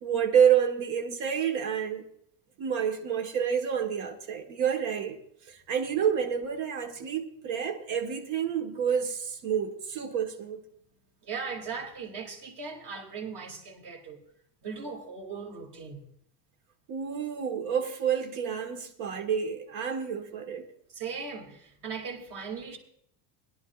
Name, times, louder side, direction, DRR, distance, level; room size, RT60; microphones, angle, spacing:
voice 1, 0.0-2.0 2.6-5.2 5.4-10.6 16.9-20.7, right 8 dB, 70° right, 1.5 m, -28 dB
voice 2, 11.2-14.2 14.6-16.1 20.9-22.8, right 5 dB, 55° right, 2.7 m, -38 dB
21.0 x 11.0 x 2.4 m
cardioid pair, 145°, 47 cm